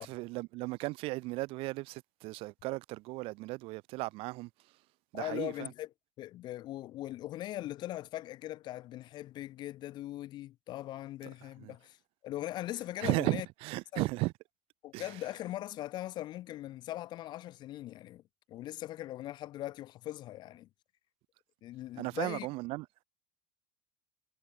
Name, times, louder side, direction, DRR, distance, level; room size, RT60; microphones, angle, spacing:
voice 1, 0.0-4.7 5.1-5.7 11.4-11.7 13.0-14.3 14.9-15.2 22.0-22.9, right 22 dB, 60° right, 0.7 m, -36 dB
voice 2, 5.1-5.9 6.2-12.0 12.2-13.5 13.9-14.1 14.8-18.2 18.5-20.7 21.6-22.5, left 14 dB, 45° left, 0.4 m, -40 dB
supercardioid pair, 130°, 11 cm